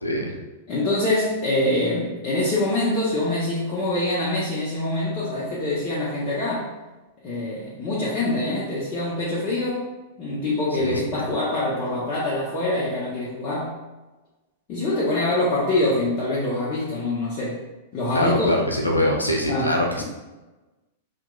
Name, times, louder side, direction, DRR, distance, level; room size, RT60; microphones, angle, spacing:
voice 1, 0.0-0.4 10.8-11.0 18.1-20.0, left 1 dB, 80° left, 1 dB, 0.6 m, -23 dB
voice 2, 0.7-6.7 7.2-9.8 10.2-13.7 14.7-17.6 17.9-18.5 19.5-20.0, left 2 dB, 35° left, -8 dB, 0.9 m, -25 dB
4.7 x 3.0 x 2.3 m, 1.1 s
figure-of-eight pair, 95°, 0 cm